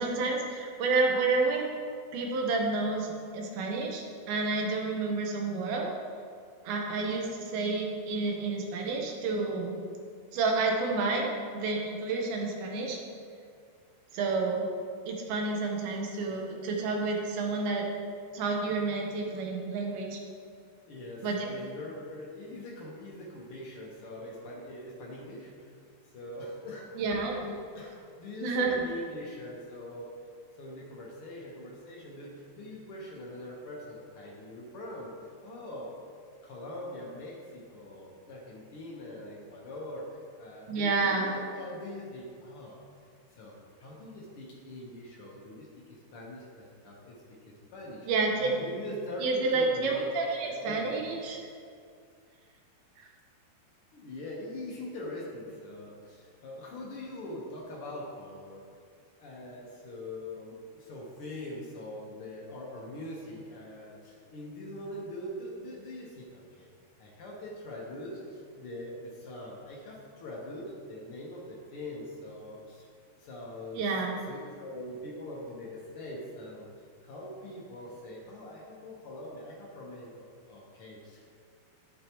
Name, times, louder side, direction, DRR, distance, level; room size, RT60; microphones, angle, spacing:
voice 1, 0.0-1.7 2.1-5.9 6.6-9.7 10.3-11.3 11.5-13.0 14.1-14.7 15.1-17.9 18.3-20.2 21.2-21.5 27.0-27.4 28.4-28.8 40.7-41.3 48.1-48.5 49.2-51.4 73.7-74.2, right 3 dB, 80° right, 0 dB, 2.9 m, -29 dB
voice 2, 20.9-25.7 26.1-26.9 27.4-30.1 30.6-35.9 36.4-42.8 43.4-43.5 43.8-47.1 47.4-48.1 48.4-50.0 50.5-51.1 53.9-58.6 59.2-66.7 67.0-72.8 73.2-73.9 74.3-76.7 77.0-81.2, left 1 dB, 85° left, -4 dB, 1.2 m, -43 dB
11.5 x 8.5 x 3.0 m, 2.2 s
omnidirectional pair, 4.4 m